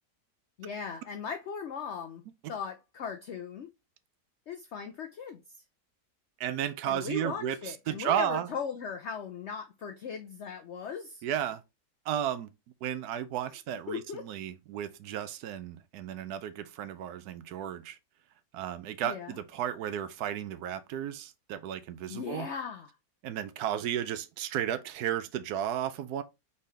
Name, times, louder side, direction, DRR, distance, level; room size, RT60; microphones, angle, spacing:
voice 1, 0.6-2.2 2.5-3.7 4.5-5.6 6.8-11.3 13.9-14.3 19.0-19.4 22.1-22.9, left 6 dB, 70° left, 0.6 m, -38 dB
voice 2, 6.4-8.5 11.2-11.6 12.1-12.5 12.8-18.0 18.5-22.5 23.2-26.2, right 10 dB, 75° right, 1.1 m, -33 dB
4.2 x 3.7 x 3.2 m
omnidirectional pair, 1.8 m